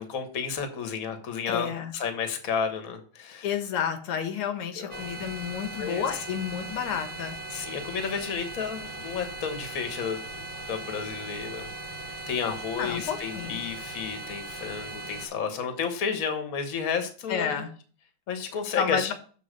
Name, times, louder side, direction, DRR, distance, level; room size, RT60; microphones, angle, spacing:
voice 1, 0.0-3.6 4.8-5.1 5.8-6.2 7.5-10.2 10.7-11.7 12.3-17.6 18.3-19.1, left 6 dB, 45° left, 7 dB, 1.4 m, -32 dB
voice 2, 1.5-1.9 3.4-7.3 12.8-13.6 17.3-17.7 18.8-19.1, left 7 dB, 90° left, 7 dB, 2.0 m, -30 dB
sound 1, 4.9-15.3, right 2 dB, 35° right, 0.9 m, -39 dB
7.0 x 3.9 x 6.4 m, 0.42 s
omnidirectional pair, 2.4 m